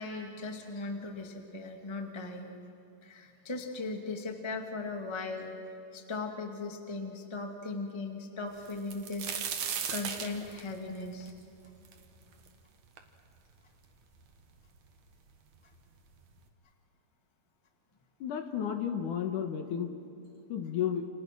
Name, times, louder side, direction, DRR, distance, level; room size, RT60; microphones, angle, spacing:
voice 1, 0.0-2.5 3.0-9.4 9.6-11.3, left 3 dB, 15° left, 3 dB, 0.9 m, -38 dB
sound 1, 8.6-12.5 13.0-13.1 13.8-13.9 14.2-14.9 15.7-15.8 16.2-16.4, right 7 dB, 55° right, 2.4 m, -37 dB
voice 2, 18.2-19.9 20.5-21.1, left 8 dB, 65° left, 6 dB, 2.4 m, -32 dB
30.0 x 29.0 x 6.1 m, 2.7 s
omnidirectional pair, 4.4 m